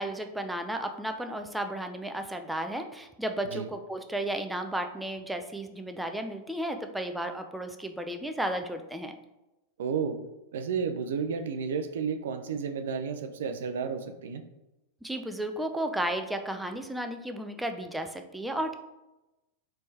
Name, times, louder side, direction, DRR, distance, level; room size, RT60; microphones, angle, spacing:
voice 1, 0.0-9.1 15.0-18.7, right 1 dB, 5° right, 6 dB, 0.4 m, -33 dB
voice 2, 9.8-10.2 10.5-14.4, right 6 dB, 75° right, 7 dB, 0.4 m, -32 dB
4.3 x 3.2 x 2.8 m, 0.96 s
hypercardioid pair, 100°, 0 cm